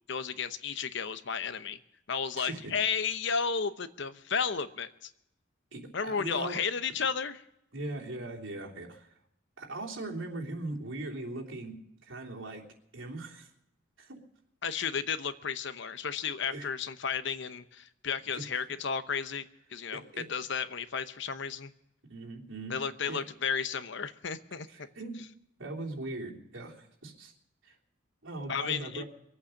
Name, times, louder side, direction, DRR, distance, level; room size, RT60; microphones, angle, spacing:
voice 1, 0.1-1.8 2.1-5.1 5.9-7.4 14.6-19.4 19.7-20.0 20.3-21.7 22.7-24.7 28.5-29.0, left 6 dB, 65° left, 12 dB, 0.9 m, -33 dB
voice 2, 2.4-2.7 5.7-6.6 7.7-9.1 9.6-11.8 12.0-12.6 12.9-13.5 14.0-14.2 16.5-16.7 18.3-18.4 19.9-20.3 22.1-22.8 23.1-23.2 24.7-25.2 25.6-27.3 27.6-27.7 28.2-29.0, right 2 dB, 75° right, -1 dB, 3.3 m, -39 dB
23.5 x 8.7 x 6.5 m, 0.79 s
head